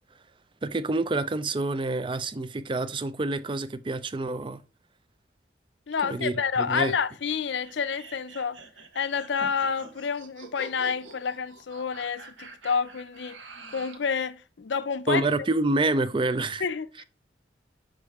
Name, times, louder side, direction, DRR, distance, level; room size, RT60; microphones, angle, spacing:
voice 1, 0.6-4.6 6.0-6.9 15.1-16.7, right 2 dB, 25° right, 0.4 m, -27 dB
voice 2, 5.9-8.6 8.9-15.3 16.6-17.0, left 6 dB, 70° left, 0.5 m, -29 dB
sound 1, 7.5-14.1, right 2 dB, 90° right, 1.3 m, -46 dB
6.2 x 5.3 x 3.5 m
head